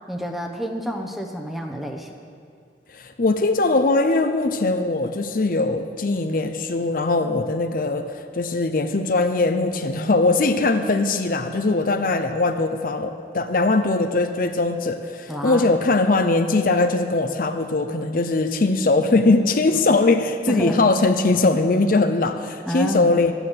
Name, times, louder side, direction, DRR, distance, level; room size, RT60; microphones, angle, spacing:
voice 1, 0.1-2.1 15.3-15.7 20.5-20.8 22.7-23.2, equal, ahead, 3 dB, 1.0 m, -28 dB
voice 2, 2.9-23.3, left 3 dB, 50° left, 7 dB, 0.7 m, -21 dB
12.5 x 9.0 x 7.9 m, 2.4 s
head